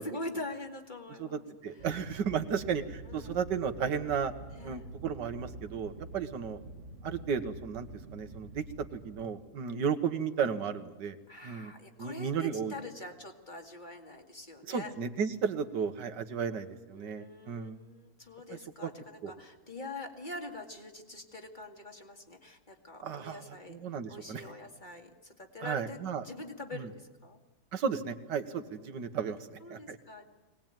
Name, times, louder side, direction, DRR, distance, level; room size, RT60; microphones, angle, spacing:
voice 1, 0.0-1.4 1.8-1.9 3.1-3.4 4.5-4.9 9.6-9.9 11.3-14.9 16.9-23.8 24.1-27.4 28.5-30.3, left 2 dB, 25° left, 3 dB, 2.4 m, -44 dB
voice 2, 1.2-4.3 4.6-6.6 7.0-8.6 8.9-11.2 11.4-11.7 12.0-12.7 14.7-17.8 18.8-18.9 19.2-19.3 23.0-23.4 23.7-24.4 25.6-26.3 26.7-26.9 27.7-30.0, right 6 dB, 80° right, 9 dB, 1.9 m, -34 dB
sound 1, 1.8-9.3, right 2 dB, 45° right, 1.5 m, -47 dB
22.5 x 19.0 x 9.0 m, 1.2 s
omnidirectional pair, 1.9 m